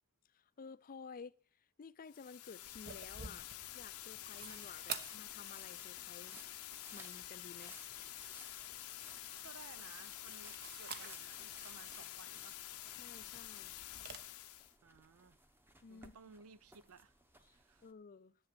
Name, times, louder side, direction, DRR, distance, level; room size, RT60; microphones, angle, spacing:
voice 1, 0.2-7.8 12.9-13.7 15.8-16.1 17.8-18.4, left 5 dB, 40° left, 0.4 m, -54 dB
sound 1, 2.1-14.7, left 14 dB, 80° left, 0.7 m, -49 dB
sound 2, 2.6-17.9, right 1 dB, 10° right, 1.0 m, -61 dB
sound 3, 2.6-14.2, right 6 dB, 45° right, 1.0 m, -52 dB
voice 2, 9.4-12.6 14.8-15.4 15.9-17.1 17.5-17.8, right 5 dB, 75° right, 0.6 m, -58 dB
10.5 x 7.8 x 6.8 m
head